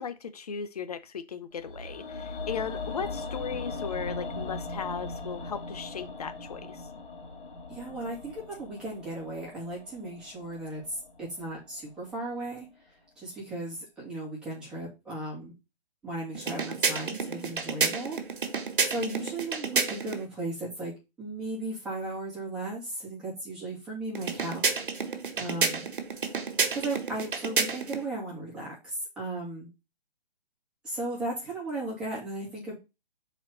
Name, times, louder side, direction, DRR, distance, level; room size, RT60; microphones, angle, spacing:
voice 1, 0.0-6.9, left 6 dB, 40° left, 0.8 m, -37 dB
sound 1, 1.6-11.7 12.0-12.1, left 3 dB, 60° left, 1.9 m, -39 dB
voice 2, 7.7-12.7 13.2-15.5 16.0-18.2 18.8-20.9 21.2-24.6 25.4-25.9 26.7-29.7 30.8-32.8, right 2 dB, 5° right, 2.4 m, -36 dB
sound 2, 16.3-20.2 24.1-28.0, right 5 dB, 60° right, 1.5 m, -30 dB
7.5 x 4.4 x 4.2 m
hypercardioid pair, 170°, 30 cm